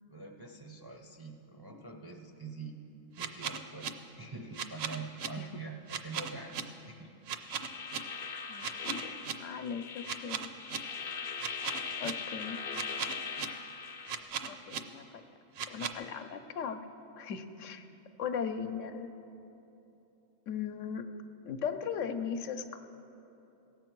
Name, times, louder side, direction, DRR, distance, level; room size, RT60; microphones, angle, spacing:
voice 1, 0.1-2.8 3.2-7.1, right 4 dB, 30° right, 1 dB, 0.4 m, -45 dB
sound 1, 3.2-3.9 4.5-5.3 5.9-6.6 7.3-8.0 8.6-9.3 10.0-10.8 11.4-12.1 12.7-13.5 14.1-14.8 15.6-15.9, right 7 dB, 65° right, 0.7 m, -36 dB
sound 2, 7.4-14.2, left 5 dB, 55° left, 0.8 m, -40 dB
voice 2, 8.5-9.1 9.4-10.5 12.0-12.6 14.4-15.2 15.7-16.9 17.2-17.9 18.2-19.1 20.5-21.0 21.4-22.8, left 7 dB, 80° left, 8 dB, 1.0 m, -38 dB
17.0 x 7.4 x 4.5 m, 3.0 s
omnidirectional pair, 1.3 m